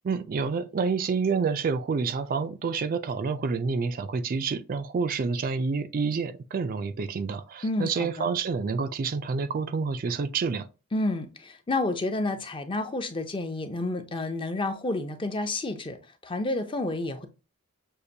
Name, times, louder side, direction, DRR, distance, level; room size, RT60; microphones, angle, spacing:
voice 1, 0.0-10.7, right 5 dB, 40° right, 0.3 m, -28 dB
voice 2, 7.6-8.3 10.9-16.0 16.2-17.3, left 2 dB, 25° left, 0.5 m, -30 dB
6.5 x 2.5 x 2.7 m
head